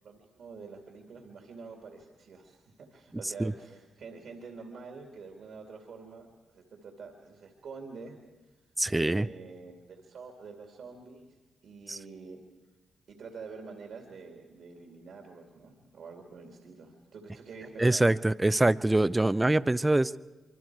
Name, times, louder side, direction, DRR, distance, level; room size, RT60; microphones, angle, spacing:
voice 1, 0.0-8.2 8.4-8.6 8.9-11.4 11.6-12.4 13.1-18.1, right 4 dB, 70° right, 2 dB, 2.4 m, -47 dB
voice 2, 8.8-9.3 11.9-12.0 17.8-20.2, right 2 dB, 20° right, 16 dB, 0.6 m, -24 dB
25.0 x 24.0 x 4.7 m, 1.2 s
supercardioid pair, 45°, 0 cm